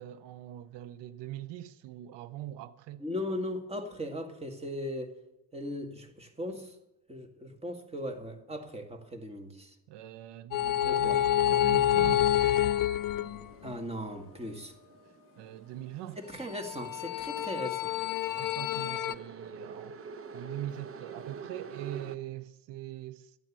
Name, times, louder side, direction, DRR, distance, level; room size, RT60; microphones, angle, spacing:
voice 1, 0.0-3.0 9.9-12.4 15.4-16.2 18.4-23.4, right 13 dB, 90° right, 0.7 m, -42 dB
voice 2, 3.0-5.2 5.5-6.8 7.1-9.7 10.8-11.2 13.6-14.7 16.2-17.9, left 1 dB, 15° right, 1.9 m, -38 dB
sound 1, 10.5-13.7 16.6-19.1, left 11 dB, 55° left, 0.5 m, -27 dB
sound 2, 11.5-22.2, right 5 dB, 35° right, 0.9 m, -48 dB
12.5 x 9.1 x 7.4 m
cardioid pair, 90°, 40 cm